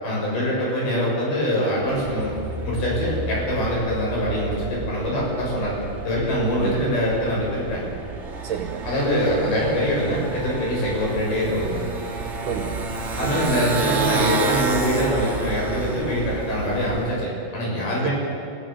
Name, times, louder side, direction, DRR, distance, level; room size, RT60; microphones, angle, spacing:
voice 1, 0.0-2.4 2.6-5.7 6.0-7.8 8.8-11.8 13.2-18.1, equal, 75° left, -4 dB, 8.3 m, -24 dB
Motorcycle, 1.9-17.2, right 3 dB, 55° right, 0.7 m, -30 dB
voice 2, 6.6-7.0 8.4-8.9 12.5-13.4 18.0-18.1, right 7 dB, 70° right, 6 dB, 2.2 m, -31 dB
27.0 x 16.5 x 7.3 m, 2.6 s
omnidirectional pair, 4.4 m